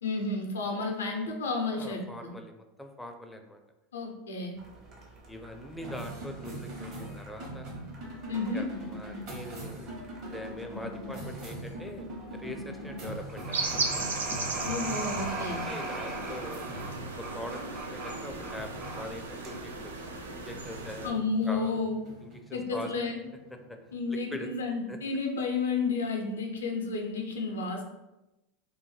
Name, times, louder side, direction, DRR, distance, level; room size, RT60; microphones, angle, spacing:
voice 1, 0.0-2.3 3.9-4.6 8.3-8.7 14.6-15.6 21.0-22.0 22.5-23.2 23.9-27.8, left 4 dB, 85° left, 2 dB, 0.5 m, -31 dB
voice 2, 1.6-3.6 5.3-7.7 8.5-9.9 10.3-12.1 12.3-13.8 15.7-16.7 17.2-19.9 20.3-21.2 21.4-21.7 22.2-23.1 23.7-23.8 24.1-24.5 24.9-25.0, left 1 dB, 5° left, 4 dB, 0.4 m, -42 dB
sound 1, 4.6-20.5, right 2 dB, 35° right, 0.6 m, -43 dB
sound 2, 5.8-24.4, right 1 dB, 55° right, 0.9 m, -42 dB
sound 3, 13.5-21.1, right 3 dB, 90° right, 0.3 m, -36 dB
2.4 x 2.1 x 3.2 m, 0.98 s
hypercardioid pair, 95°, 0 cm